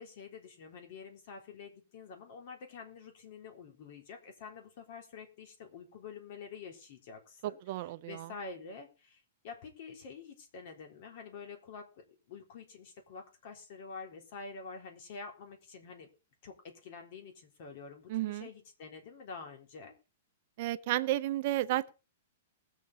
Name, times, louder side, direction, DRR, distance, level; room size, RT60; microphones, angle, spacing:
voice 1, 0.0-16.1 16.4-19.9, left 5 dB, 45° left, 3.7 m, -48 dB
voice 2, 7.4-8.3 18.1-18.5 20.6-21.9, right 15 dB, 45° right, 0.7 m, -32 dB
20.0 x 7.4 x 4.1 m
hypercardioid pair, 160°, 0 cm